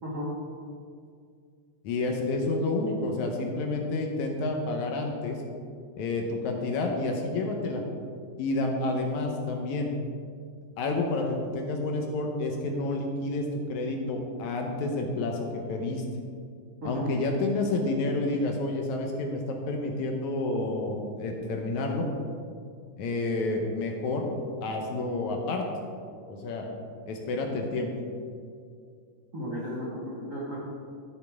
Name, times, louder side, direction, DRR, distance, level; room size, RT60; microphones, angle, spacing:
voice 1, 0.0-0.4 16.8-17.1 29.3-30.6, equal, 70° right, -6 dB, 0.7 m, -34 dB
voice 2, 1.8-5.4 6.0-7.8 8.4-9.9 10.8-16.0 16.8-22.1 23.0-24.3 24.6-25.6 26.3-26.7 27.1-27.9, left 2 dB, 70° left, 2 dB, 2.0 m, -29 dB
13.5 x 6.5 x 3.5 m, 2.2 s
omnidirectional pair, 3.8 m